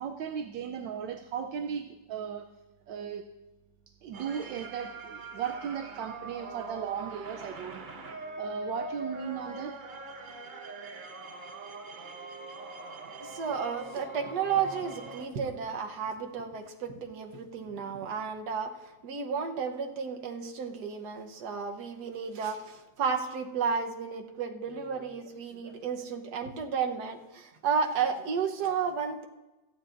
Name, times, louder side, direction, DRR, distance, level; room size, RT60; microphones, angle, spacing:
voice 1, 0.0-2.5 2.9-3.2 4.0-7.9 8.4-9.7, right 7 dB, 80° right, 4 dB, 1.3 m, -36 dB
sound 1, 4.1-15.3, right 2 dB, 45° right, 0.6 m, -42 dB
voice 2, 13.0-29.3, right 6 dB, 60° right, 3 dB, 1.5 m, -32 dB
27.5 x 9.3 x 2.5 m, 1.1 s
omnidirectional pair, 2.0 m